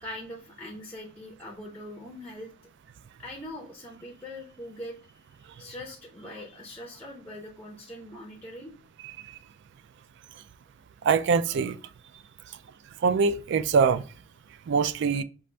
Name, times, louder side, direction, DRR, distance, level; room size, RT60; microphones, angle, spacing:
voice 1, 0.0-2.5 3.2-8.7, left 1 dB, 5° left, 0.5 m, -42 dB
voice 2, 11.0-11.8 13.0-14.0 14.7-15.2, right 5 dB, 60° right, 0.3 m, -23 dB
5.4 x 2.5 x 3.1 m
head